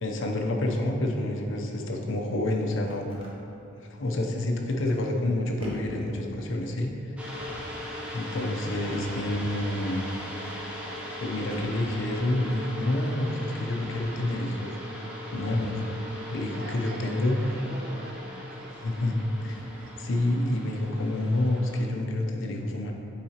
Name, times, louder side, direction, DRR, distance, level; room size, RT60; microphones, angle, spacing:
voice 1, 0.0-3.1 3.8-7.2 8.1-10.1 11.2-15.8 16.3-17.4 18.8-19.6 20.0-22.9, left 1 dB, 65° left, 1 dB, 0.6 m, -28 dB
sound 1, 2.9-3.4 4.8-5.3 5.6-6.1 7.2-7.8 8.9-9.3 10.1-10.6 11.5-11.9 12.8-13.2 13.8-14.1 15.3-15.6 17.7-17.8 18.7-19.0 19.4-19.8, equal, 25° right, 0.9 m, -42 dB
sound 2, 7.2-21.8, left 1 dB, 5° right, 0.7 m, -39 dB
voice 2, 16.5-20.1, right 1 dB, 45° right, 2 dB, 0.5 m, -45 dB
7.3 x 4.7 x 2.9 m, 2.8 s
head